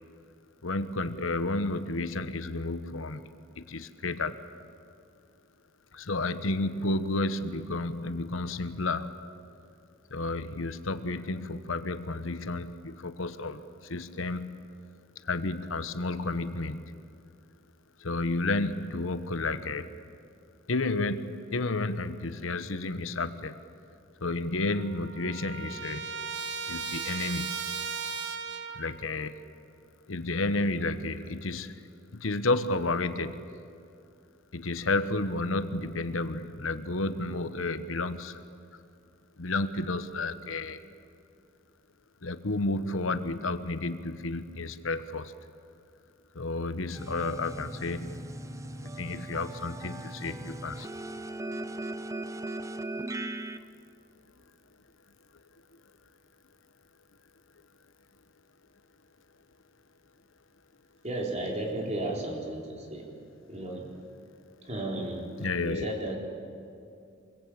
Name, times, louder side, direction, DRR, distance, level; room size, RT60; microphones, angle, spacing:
voice 1, 0.6-3.2 3.6-4.4 5.9-9.2 10.1-14.7 15.2-17.0 18.0-19.9 20.7-23.5 24.2-26.1 26.7-27.7 28.7-29.4 30.1-31.9 32.1-33.4 34.5-38.4 39.4-40.8 42.2-45.3 46.3-48.3 48.8-50.9 65.4-65.9, left 2 dB, 70° left, 10 dB, 1.1 m, -31 dB
Trumpet, 24.2-24.3 24.6-29.0, right 6 dB, 60° right, 1.4 m, -36 dB
sound 1, 46.9-53.6, right 1 dB, 15° right, 0.7 m, -38 dB
voice 2, 61.0-63.1 63.5-64.0 64.6-65.3 65.6-66.2, right 1 dB, 35° right, 0 dB, 4.1 m, -34 dB
25.5 x 22.5 x 8.7 m, 2.5 s
head